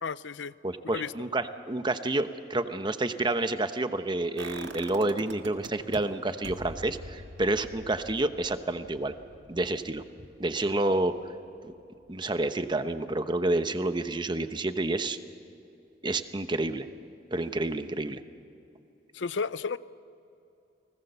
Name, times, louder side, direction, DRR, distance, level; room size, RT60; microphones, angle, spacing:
voice 1, 0.0-0.5 0.9-1.1 19.1-19.8, left 5 dB, 85° left, 16 dB, 0.6 m, -32 dB
voice 2, 0.6-9.1 9.5-10.0 10.4-11.1 11.6-11.7 12.1-15.2 16.0-16.9 17.3-18.2, right 2 dB, 25° right, 10 dB, 1.0 m, -29 dB
sound 1, 4.4-6.0 6.4-12.3 12.6-12.7, right 2 dB, 85° right, 1.8 m, -45 dB
29.5 x 20.0 x 6.9 m, 2.8 s
head